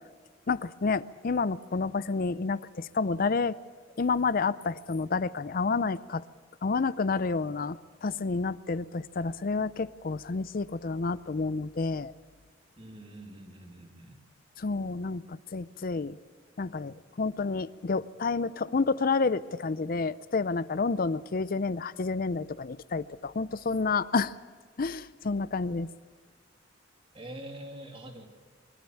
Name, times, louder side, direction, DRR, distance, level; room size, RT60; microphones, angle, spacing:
voice 1, 0.5-3.6 4.0-6.2 6.6-12.1 14.6-16.2 16.6-24.3 24.8-25.9, left 4 dB, 50° left, 17 dB, 0.5 m, -29 dB
voice 2, 12.8-14.2 27.1-28.3, right 1 dB, 30° right, 2 dB, 2.8 m, -44 dB
23.0 x 13.0 x 9.3 m, 1.5 s
head